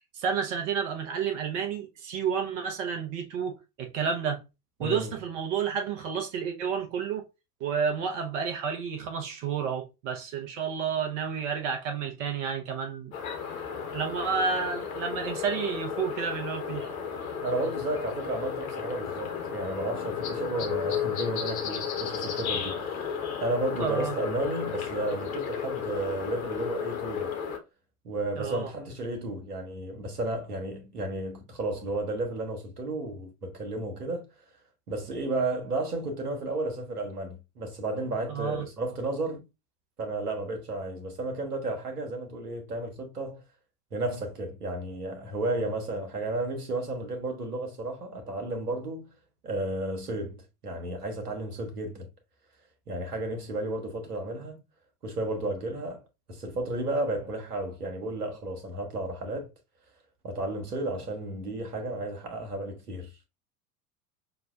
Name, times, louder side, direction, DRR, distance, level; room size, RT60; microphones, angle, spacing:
voice 1, 0.1-4.4 4.8-7.2 7.6-13.1 13.9-16.9 23.8-24.1 28.4-28.7 38.3-38.7, right 6 dB, 55° right, 0.9 m, -30 dB
voice 2, 4.8-5.1 17.4-23.1 23.4-27.3 28.0-34.2 34.9-39.4 40.0-43.4 43.9-49.1 49.4-52.1 52.9-54.6 55.0-56.0 56.3-59.5 60.2-63.3, right 2 dB, 80° right, 1.2 m, -33 dB
sound 1, 13.1-27.6, left 7 dB, 65° left, 1.0 m, -33 dB
5.9 x 2.2 x 2.3 m
figure-of-eight pair, 80°, 46 cm